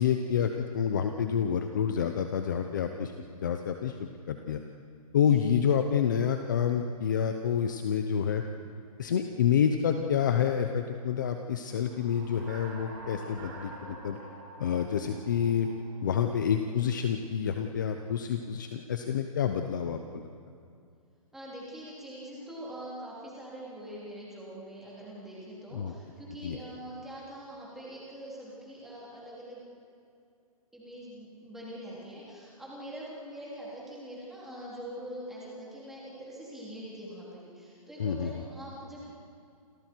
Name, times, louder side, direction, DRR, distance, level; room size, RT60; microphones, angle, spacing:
voice 1, 0.0-3.1 3.4-4.0 4.3-4.6 5.1-8.4 9.0-14.2 14.6-15.7 16.0-20.3 25.7-25.9 26.4-26.6 38.0-38.3, left 8 dB, 30° left, 6 dB, 0.9 m, -28 dB
sound 1, 11.7-16.4, right 2 dB, 25° right, 4.7 m, -47 dB
voice 2, 21.3-29.7 30.7-39.1, equal, ahead, -7 dB, 3.6 m, -43 dB
29.5 x 28.0 x 4.6 m, 2.4 s
hypercardioid pair, 180°, 19 cm